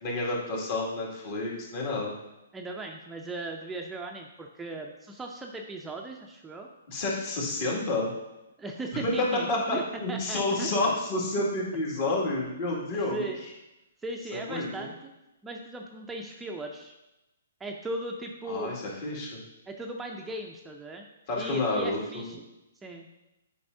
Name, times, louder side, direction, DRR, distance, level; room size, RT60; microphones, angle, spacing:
voice 1, 0.0-2.1 6.9-8.1 8.9-13.3 14.3-14.9 18.5-19.4 21.3-22.3, left 2 dB, 45° left, -3 dB, 2.3 m, -29 dB
voice 2, 2.5-6.7 8.6-9.8 10.1-10.8 12.9-13.4 14.0-15.1 15.4-16.9 17.6-18.7 19.7-21.1 21.4-22.4 22.8-23.1, right 2 dB, 10° right, 1 dB, 0.5 m, -38 dB
8.4 x 5.3 x 2.7 m, 0.95 s
hypercardioid pair, 135°, 0 cm